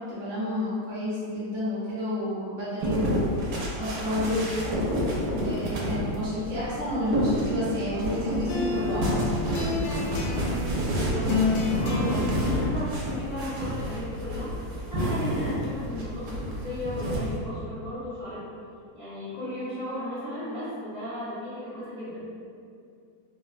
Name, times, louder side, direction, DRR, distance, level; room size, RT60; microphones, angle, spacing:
voice 1, 0.0-3.2 3.8-4.7 5.4-9.3, left 1 dB, 55° right, -10 dB, 1.1 m, -30 dB
sound 1, 2.8-17.3, equal, 85° right, 1.2 m, -29 dB
sound 2, 8.5-15.2, left 4 dB, 75° left, 1.0 m, -32 dB
voice 2, 10.8-11.3 11.8-14.5 14.9-18.5 18.9-22.2, equal, 50° left, -14 dB, 0.5 m, -35 dB
3.3 x 2.0 x 2.4 m, 2.3 s
omnidirectional pair, 1.7 m